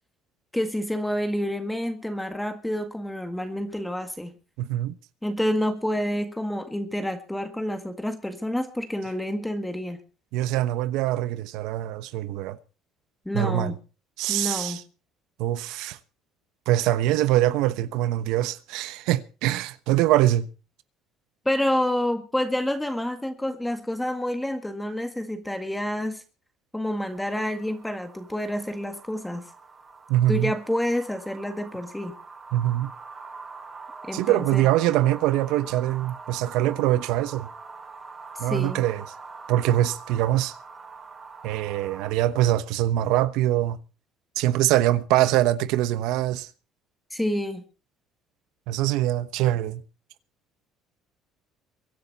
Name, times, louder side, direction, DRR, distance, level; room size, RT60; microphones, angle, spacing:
voice 1, 0.5-4.3 5.2-10.0 13.2-13.8 14.3-14.8 21.4-26.2 26.7-29.5 30.3-32.2 34.0-34.7 38.4-38.8 47.1-47.6, left 1 dB, 5° left, 1.8 m, -28 dB
voice 2, 4.6-4.9 10.3-12.6 13.3-13.7 14.2-14.8 15.4-16.0 16.7-20.5 30.1-30.5 32.5-32.9 34.1-37.5 38.4-39.0 39.5-40.5 41.4-43.8 44.4-46.5 48.7-49.8, right 14 dB, 80° right, 1.0 m, -23 dB
sound 1, 27.0-42.1, right 4 dB, 20° right, 4.4 m, -44 dB
23.5 x 10.5 x 4.2 m
cardioid pair, 125°, 0 cm